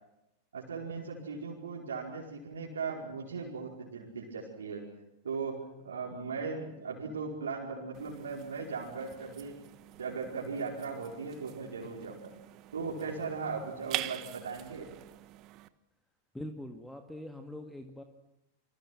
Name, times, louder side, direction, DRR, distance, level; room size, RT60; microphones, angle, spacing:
voice 1, 0.5-4.8 5.2-9.6 10.0-12.3 12.7-14.9, right 5 dB, 70° right, -3 dB, 5.0 m, -38 dB
sound 1, 7.9-15.7, right 16 dB, 40° right, 1.4 m, -44 dB
voice 2, 16.3-18.0, left 1 dB, 5° left, 6 dB, 2.2 m, -43 dB
29.0 x 25.5 x 6.1 m, 0.89 s
figure-of-eight pair, 90°, 0 cm